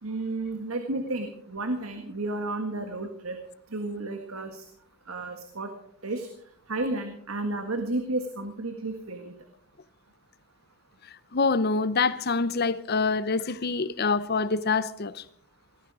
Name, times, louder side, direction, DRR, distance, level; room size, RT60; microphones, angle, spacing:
voice 1, 0.0-3.4 3.7-4.6 5.1-5.7 6.0-6.3 6.7-9.3, right 2 dB, 80° right, 1.7 m, -32 dB
voice 2, 11.3-15.2, left 4 dB, 50° left, 0.7 m, -26 dB
18.0 x 14.0 x 4.9 m
head